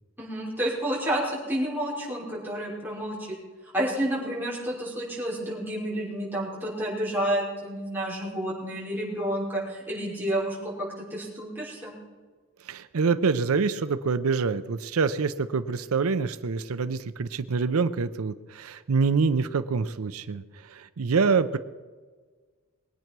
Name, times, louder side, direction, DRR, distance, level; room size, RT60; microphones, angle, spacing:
voice 1, 0.2-1.2 1.5-3.4 3.7-11.9, right 1 dB, 10° right, -6 dB, 5.5 m, -30 dB
voice 2, 12.6-21.6, right 5 dB, 85° right, 12 dB, 0.6 m, -26 dB
21.5 x 9.2 x 6.1 m, 1.4 s
head